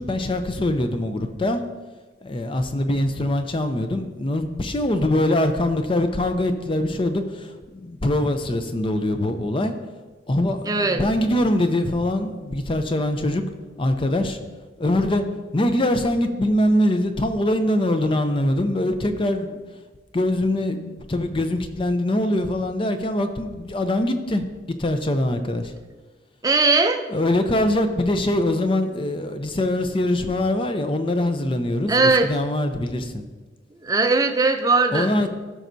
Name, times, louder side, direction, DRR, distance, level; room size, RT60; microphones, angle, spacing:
voice 1, 0.0-1.6 2.2-9.7 10.3-13.4 13.8-14.4 14.8-15.2 15.5-19.6 20.1-24.4 24.8-25.7 27.1-33.2 34.9-35.3, left 1 dB, 25° left, 8 dB, 0.5 m, -23 dB
voice 2, 10.7-11.0 26.4-27.1 31.9-32.3 33.8-35.1, right 3 dB, 20° right, 6 dB, 0.5 m, -19 dB
14.5 x 6.1 x 2.7 m, 1.3 s
head